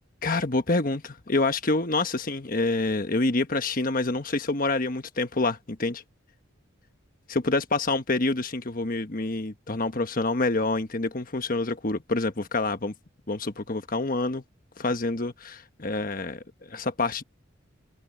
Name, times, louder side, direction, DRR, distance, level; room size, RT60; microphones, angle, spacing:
voice 1, 0.2-6.0 7.3-12.9 13.3-14.4 14.8-17.2, left 2 dB, 45° left, 1.3 m, -27 dB
head